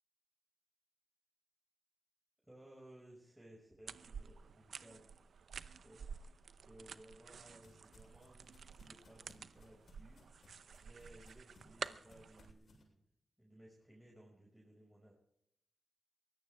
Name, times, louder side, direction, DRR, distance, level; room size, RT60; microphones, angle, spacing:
voice 1, 2.5-5.1 5.6-6.3 6.6-13.0 13.4-15.1, right 1 dB, 10° right, -3 dB, 5.8 m, -60 dB
sound 1, 3.9-12.5, right 6 dB, 75° right, 0.7 m, -51 dB
sound 2, 7.6-12.8, left 2 dB, 70° left, 7.5 m, -66 dB
23.0 x 17.0 x 3.5 m, 0.76 s
cardioid pair, 70°, 0 cm